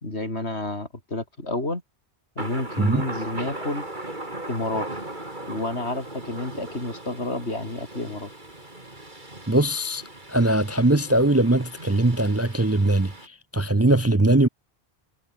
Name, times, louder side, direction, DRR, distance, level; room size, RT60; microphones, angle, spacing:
voice 1, 0.0-1.8 2.4-3.8 4.5-4.9 5.5-8.3, left 2 dB, 85° left, 5.3 m, -30 dB
Thunder, 2.4-13.3, right 1 dB, 45° right, 4.7 m, -38 dB
voice 2, 9.5-10.0 10.3-14.5, right 2 dB, 15° right, 0.6 m, -21 dB
omnidirectional pair, 1.1 m